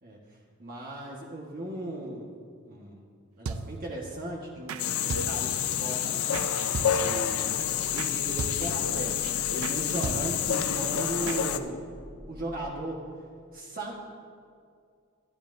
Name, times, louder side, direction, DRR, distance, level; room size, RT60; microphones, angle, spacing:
voice 1, 0.6-2.2 2.6-3.0 3.4-6.5 6.9-7.5 7.9-11.8 12.3-13.0 13.5-14.0, right 1 dB, 45° right, -3 dB, 1.4 m, -37 dB
sound 1, 3.5-4.0 4.7-4.8 5.1-5.8 6.3-7.3 8.0-8.1 8.4-8.9 9.2-9.3 9.6-9.8 10.0-10.6 11.3-11.4, right 4 dB, 75° right, 0.5 m, -36 dB
sound 2, 4.8-11.6, left 9 dB, 85° left, 0.6 m, -28 dB
sound 3, 7.6-12.7, right 1 dB, ahead, 1.1 m, -48 dB
22.0 x 11.0 x 2.7 m, 2.2 s
head